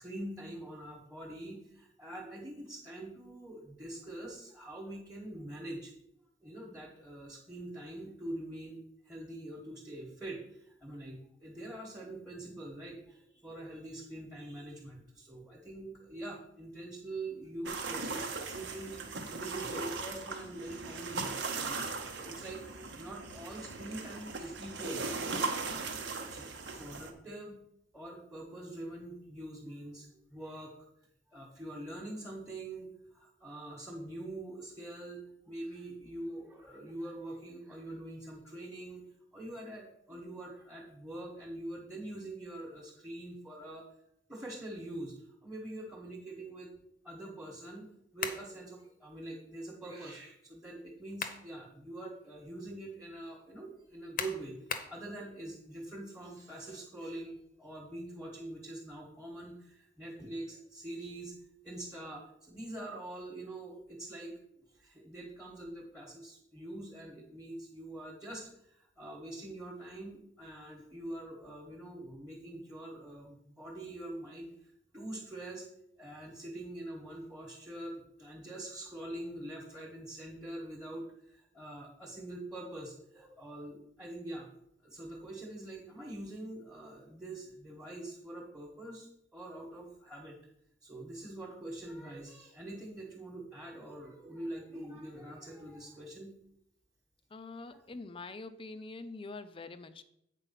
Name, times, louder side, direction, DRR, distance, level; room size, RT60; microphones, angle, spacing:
voice 1, 0.0-5.9 6.4-8.8 9.0-22.6 22.9-25.4 26.3-26.4 26.7-27.6 27.9-30.7 31.3-39.1 39.3-43.8 44.3-46.7 47.0-54.6 54.9-61.3 61.6-74.5 74.9-75.7 76.0-84.5 84.8-90.4 90.8-96.3 97.7-97.8, right 1 dB, 5° right, -4 dB, 1.3 m, -44 dB
sound 1, 17.7-27.1, right 4 dB, 75° right, 1.1 m, -38 dB
sound 2, 48.2-48.5 50.9-51.5 52.0-52.1 54.2-55.0, left 6 dB, 50° left, 0.8 m, -37 dB
voice 2, 97.3-100.0, left 3 dB, 30° left, 12 dB, 0.5 m, -45 dB
8.3 x 4.5 x 5.7 m, 0.77 s
head